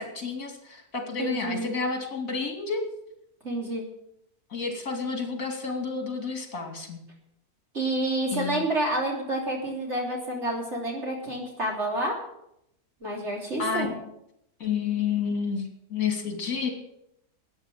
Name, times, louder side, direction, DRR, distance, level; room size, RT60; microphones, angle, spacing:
voice 1, 0.0-2.8 4.5-7.0 8.3-8.6 13.6-14.0 14.6-16.7, left 5 dB, 60° left, 4 dB, 3.0 m, -30 dB
voice 2, 1.2-1.7 3.4-3.8 7.7-12.2 13.0-13.9, right 1 dB, 45° right, -1 dB, 3.6 m, -29 dB
13.0 x 9.2 x 7.4 m, 0.79 s
omnidirectional pair, 1.6 m